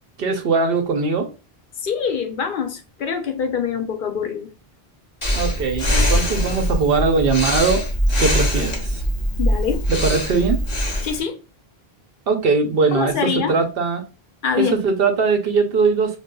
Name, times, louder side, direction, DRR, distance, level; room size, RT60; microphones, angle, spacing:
voice 1, 0.2-1.3 5.4-7.8 8.2-9.0 9.9-10.6 12.3-14.0 14.6-16.2, right 4 dB, 70° right, 0.9 m, -20 dB
voice 2, 1.8-4.5 9.4-9.8 11.0-11.4 12.9-13.6 14.4-14.8, left 7 dB, 60° left, 0.7 m, -24 dB
Breathing, 5.2-11.2, equal, 30° left, 0.9 m, -22 dB
5.0 x 2.3 x 2.2 m
omnidirectional pair, 1.0 m